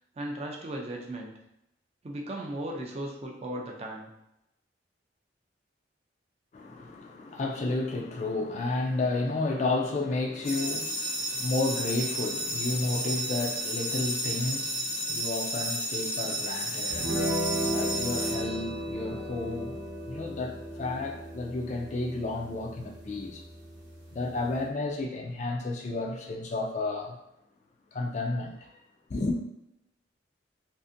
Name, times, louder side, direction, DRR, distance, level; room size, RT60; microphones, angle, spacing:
voice 1, 0.2-1.3 2.0-4.1, right 1 dB, 35° right, 0.4 m, -36 dB
voice 2, 6.5-23.4 24.1-27.2 27.9-28.7 29.1-29.4, left 2 dB, 40° left, 0.3 m, -32 dB
sound 1, 10.4-19.1, equal, 60° left, 0.8 m, -32 dB
sound 2, 16.9-24.7, right 1 dB, 90° right, 0.8 m, -35 dB
2.6 x 2.5 x 2.5 m
head